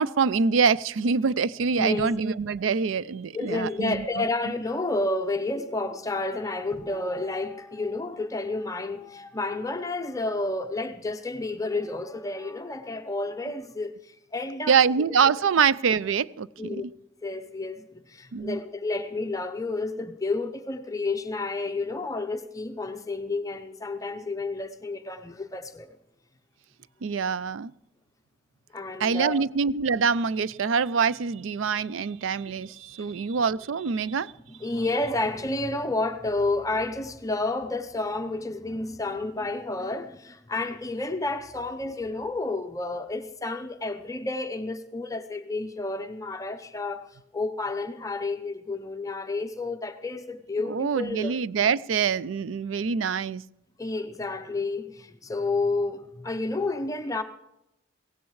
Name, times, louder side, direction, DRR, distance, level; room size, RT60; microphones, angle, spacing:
voice 1, 0.0-4.5 14.7-16.9 18.3-18.6 27.0-27.7 29.0-34.3 50.7-53.4, right 6 dB, 90° right, 0.5 m, -25 dB
voice 2, 1.7-2.1 3.3-14.8 15.2-15.3 16.6-16.8 17.2-25.9 28.7-29.4 33.0-33.1 34.6-47.1 47.3-51.3 53.8-57.2, left 2 dB, 15° left, 0.7 m, -30 dB
23.0 x 17.0 x 3.2 m
head